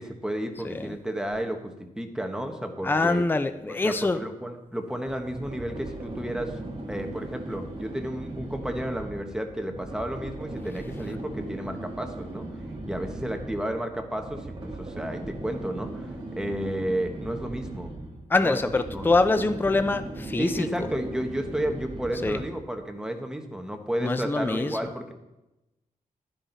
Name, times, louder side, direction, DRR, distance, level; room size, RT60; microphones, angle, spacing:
voice 1, 0.0-3.2 3.7-6.6 6.9-12.5 12.9-17.9 18.4-19.0 20.4-25.1, right 1 dB, 5° right, 4 dB, 1.3 m, -32 dB
voice 2, 0.6-1.0 2.8-4.2 18.3-20.7 22.2-22.4 24.0-24.8, left 3 dB, 15° left, 10 dB, 0.5 m, -24 dB
sound 1, 5.1-22.7, right 2 dB, 40° right, 2.6 m, -38 dB
12.5 x 10.5 x 4.0 m, 0.95 s
wide cardioid pair, 135°, 15 cm